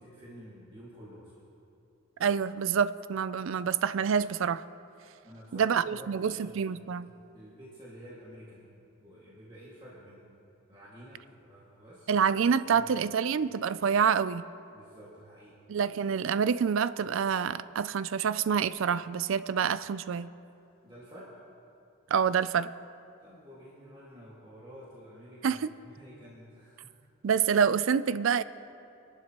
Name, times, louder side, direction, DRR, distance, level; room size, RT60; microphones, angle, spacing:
voice 1, 0.0-1.4 5.2-10.3 10.7-12.1 12.6-13.1 14.7-15.6 20.8-21.3 23.2-26.9, equal, 20° right, -8 dB, 2.0 m, -50 dB
voice 2, 2.2-4.6 5.5-7.1 12.1-14.5 15.7-20.3 22.1-22.7 25.4-25.7 27.2-28.4, right 7 dB, 60° right, 15 dB, 0.4 m, -27 dB
24.5 x 11.5 x 3.0 m, 2.6 s
head